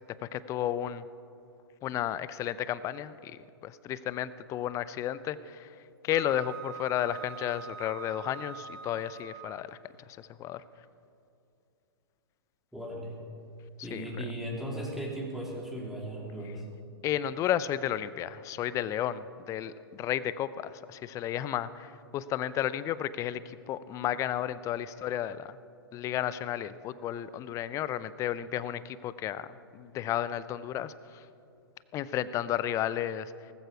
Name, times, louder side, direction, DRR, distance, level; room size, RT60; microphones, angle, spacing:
voice 1, 0.2-1.0 1.8-5.7 6.0-9.8 10.1-10.6 13.8-14.2 17.0-25.6 25.9-29.5 29.7-31.2 31.9-33.5, left 11 dB, 25° left, 16 dB, 0.5 m, -33 dB
Wind instrument woodwind instrument, 6.1-9.7, right 7 dB, 40° right, 1.0 m, -44 dB
voice 2, 12.7-13.1 13.8-16.6, right 1 dB, 5° right, -2 dB, 3.1 m, -37 dB
19.0 x 14.5 x 4.8 m, 2.7 s
figure-of-eight pair, 110°, 13 cm